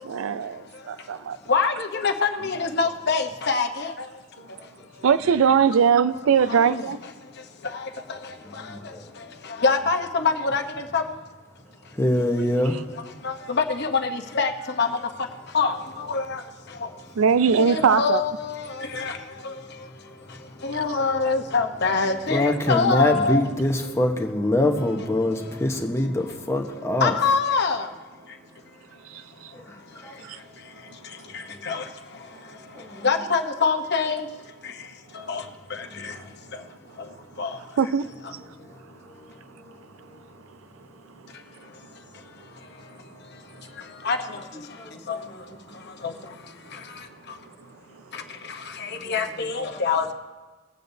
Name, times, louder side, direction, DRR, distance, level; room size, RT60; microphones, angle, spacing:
voice 1, 0.0-1.4 5.0-7.0 12.7-12.8 17.2-18.2 29.1-29.2 30.3-30.4 37.8-38.1 38.3-38.4, right 7 dB, 85° right, 15 dB, 0.4 m, -21 dB
voice 2, 1.5-3.9 6.5-6.8 9.6-11.0 13.2-14.5 14.8-14.9 15.5-16.4 17.6-19.2 20.6-23.4 27.0-27.9 31.6-31.8 33.0-34.3 35.1-35.4 35.7-36.1 37.4-37.6 44.0-44.2 45.1-45.2 46.0-46.1 48.8-50.1, left 4 dB, 55° left, 5 dB, 0.9 m, -24 dB
voice 3, 12.0-12.7 22.3-27.1 30.0-30.1 33.0-33.1 49.1-49.2, left 1 dB, 15° left, 2 dB, 1.0 m, -23 dB
20.5 x 8.5 x 2.7 m, 1.3 s
head